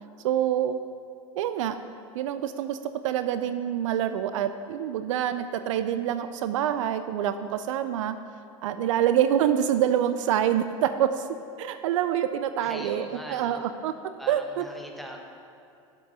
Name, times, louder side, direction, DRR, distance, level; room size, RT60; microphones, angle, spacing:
voice 1, 0.2-0.8 1.4-1.8 2.1-2.8 3.0-8.2 8.6-11.3 11.6-13.9 14.3-14.6, right 10 dB, 70° right, 10 dB, 0.5 m, -26 dB
voice 2, 12.6-13.6 14.2-15.2, equal, ahead, 1 dB, 1.4 m, -41 dB
11.5 x 6.1 x 5.5 m, 2.7 s
hypercardioid pair, 80°, 17 cm